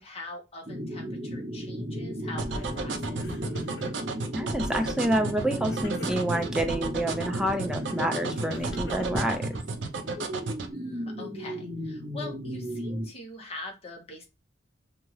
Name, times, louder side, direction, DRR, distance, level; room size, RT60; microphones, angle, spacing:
voice 1, 0.0-3.3 10.7-14.2, left 2 dB, 35° left, 1 dB, 0.9 m, -43 dB
sound 1, 0.7-13.1, equal, 30° right, 0.8 m, -35 dB
sound 2, 2.4-10.7, right 3 dB, 75° right, 0.5 m, -33 dB
Crying sobbing, 2.5-2.8 3.1-4.1 4.6-5.1 5.7-6.7 7.6-9.8, left 2 dB, 80° left, 0.8 m, -46 dB
voice 2, 4.3-9.6, right 1 dB, 5° right, 5 dB, 0.4 m, -28 dB
2.7 x 2.4 x 3.1 m, 0.26 s
head